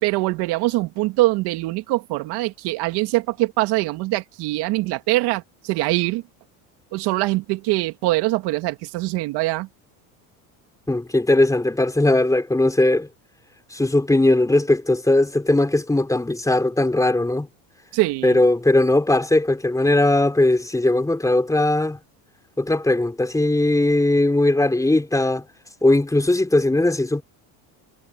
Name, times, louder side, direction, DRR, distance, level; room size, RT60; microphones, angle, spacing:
voice 1, 0.0-6.2 6.9-9.7 17.9-18.4, right 20 dB, 65° right, 2.4 m, -23 dB
voice 2, 10.9-13.1 13.7-17.5 18.2-22.0 22.6-25.4 25.8-27.2, left 2 dB, 10° left, 3.7 m, -19 dB
supercardioid pair, 115°, 41 cm